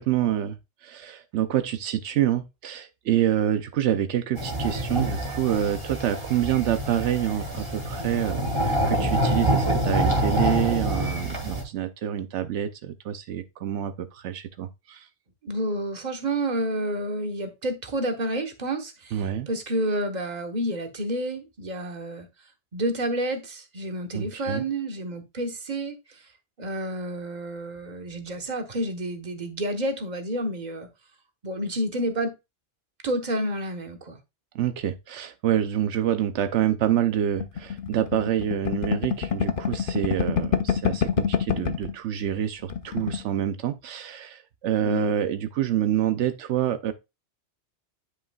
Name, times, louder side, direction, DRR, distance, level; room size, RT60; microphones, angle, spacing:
voice 1, 0.0-15.1 19.1-19.5 24.1-24.6 34.5-46.9, right 11 dB, 80° right, 0.9 m, -27 dB
sound 1, 4.4-11.6, equal, 25° right, 1.9 m, -26 dB
voice 2, 15.4-22.3 22.7-26.3 26.6-30.9 31.4-32.3 33.0-34.2 44.8-45.1, right 1 dB, 40° right, 1.2 m, -29 dB
sound 2, 37.4-41.9 42.3-42.4 42.6-43.2, left 7 dB, 55° left, 0.8 m, -26 dB
9.9 x 5.5 x 2.3 m
omnidirectional pair, 1.2 m